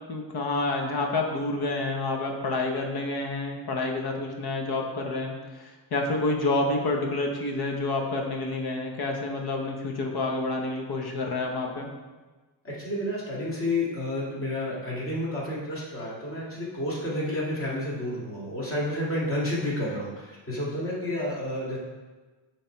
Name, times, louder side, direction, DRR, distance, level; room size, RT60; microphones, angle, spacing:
voice 1, 0.1-11.9, left 2 dB, 55° left, 1 dB, 1.1 m, -28 dB
voice 2, 12.6-21.8, left 1 dB, 30° left, -6 dB, 2.3 m, -30 dB
9.7 x 3.5 x 4.6 m, 1.3 s
cardioid pair, 135°, 46 cm